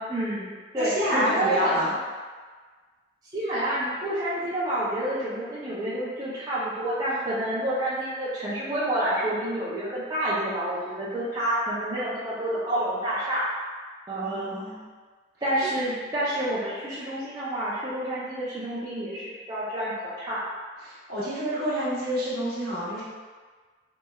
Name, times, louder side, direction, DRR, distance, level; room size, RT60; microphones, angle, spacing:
voice 1, 0.0-1.8 3.3-13.5 14.1-14.6 15.4-20.4, right 1 dB, 20° right, -11 dB, 0.5 m, -28 dB
voice 2, 0.8-1.9 14.2-14.8 20.8-23.0, equal, 55° right, -7 dB, 0.8 m, -28 dB
3.1 x 3.0 x 2.3 m, 1.5 s
head